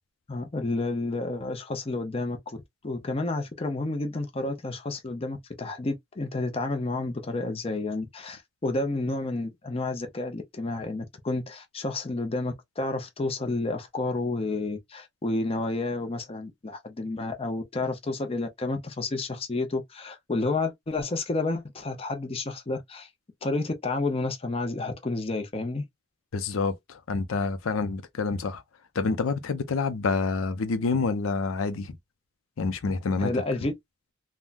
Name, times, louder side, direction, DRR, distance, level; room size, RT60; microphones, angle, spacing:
voice 1, 0.3-23.1 23.4-25.8 33.2-33.7, left 2 dB, 30° left, 0.6 m, -30 dB
voice 2, 26.3-28.6 29.0-31.9 32.6-33.3, left 4 dB, 90° left, 0.5 m, -27 dB
3.5 x 2.1 x 2.4 m
head